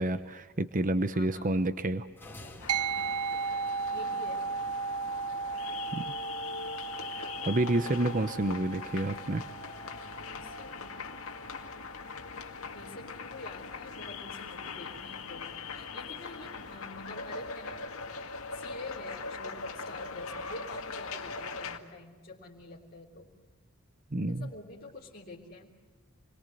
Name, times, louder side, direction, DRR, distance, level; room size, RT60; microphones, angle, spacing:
voice 1, 0.0-2.1 5.9-6.1 7.1-9.4 24.1-24.5, right 1 dB, 35° right, 11 dB, 0.9 m, -29 dB
voice 2, 1.1-1.8 2.4-3.4 3.9-4.5 10.2-11.0 12.7-17.9 18.5-23.3 24.2-25.8, left 2 dB, 45° left, -4 dB, 3.3 m, -47 dB
sound 1, 2.2-4.4, left 1 dB, 10° left, 3.8 m, -51 dB
sound 2, 2.6-21.8, left 4 dB, 65° left, 2.0 m, -41 dB
sound 3, 2.7-12.4, right 5 dB, 75° right, 1.0 m, -36 dB
28.5 x 22.5 x 7.8 m, 1.3 s
head